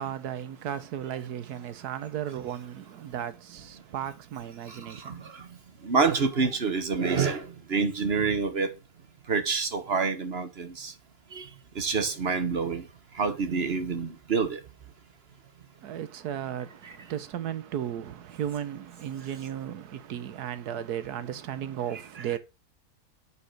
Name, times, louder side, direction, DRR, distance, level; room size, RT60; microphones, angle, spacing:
voice 1, 0.0-5.3 15.8-22.4, right 10 dB, 85° right, 1.4 m, -35 dB
voice 2, 4.7-8.7 9.3-10.9 11.3-11.5 11.7-12.9 13.1-14.6 16.8-16.9 21.9-22.2, right 5 dB, 45° right, 1.2 m, -28 dB
8.4 x 4.5 x 6.4 m
omnidirectional pair, 1.6 m